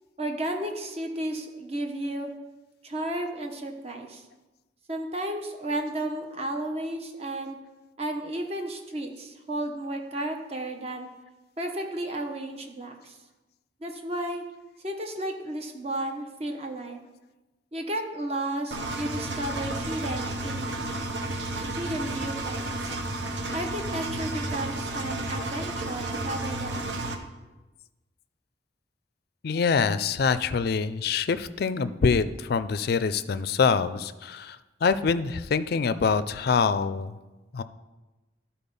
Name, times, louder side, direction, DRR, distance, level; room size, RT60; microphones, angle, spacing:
voice 1, 0.2-2.3 2.8-4.2 4.9-7.6 8.0-11.1 11.6-13.2 13.8-14.4 14.8-17.0 17.7-20.8 21.8-22.9 23.5-27.1, right 1 dB, 35° right, 3 dB, 1.0 m, -33 dB
Engine, 18.7-27.1, right 2 dB, 75° right, 0.9 m, -32 dB
voice 2, 29.4-37.2 37.5-37.6, left 5 dB, 55° left, 13 dB, 0.4 m, -25 dB
12.5 x 4.3 x 5.4 m, 1.1 s
head